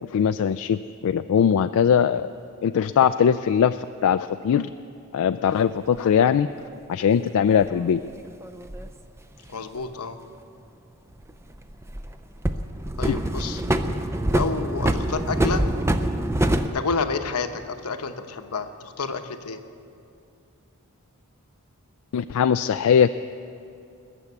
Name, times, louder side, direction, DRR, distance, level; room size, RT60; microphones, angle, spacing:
voice 1, 0.0-2.3 2.6-4.7 5.1-6.5 6.9-8.0 13.1-13.2 22.1-23.1, left 8 dB, 70° left, 10 dB, 0.3 m, -21 dB
Pushing the cart, 6.0-6.1 7.6-8.9 11.1-12.1 12.4-16.7, right 1 dB, 10° right, 0.5 m, -25 dB
voice 2, 9.5-10.2 13.0-13.6 14.3-15.6 16.7-19.6, left 4 dB, 90° left, 8 dB, 0.9 m, -29 dB
20.5 x 7.1 x 8.3 m, 2.6 s
head